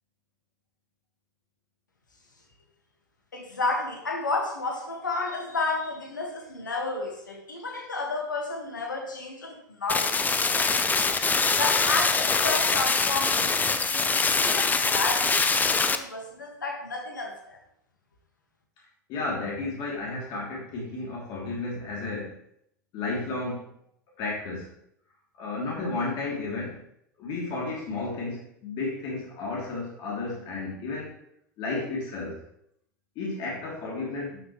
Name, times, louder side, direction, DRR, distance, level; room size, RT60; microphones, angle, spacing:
voice 1, 3.3-11.0 11.6-17.6, left 3 dB, 85° left, 2 dB, 1.7 m, -32 dB
sound 1, 9.9-16.0, left 4 dB, 15° left, 0.7 m, -24 dB
voice 2, 19.1-22.4 22.9-23.7 24.2-24.7 25.4-26.8 27.2-31.2 31.6-32.4 33.1-34.4, left 3 dB, 50° left, -4 dB, 2.9 m, -32 dB
12.5 x 6.3 x 3.1 m, 0.72 s
figure-of-eight pair, 80°, 10 cm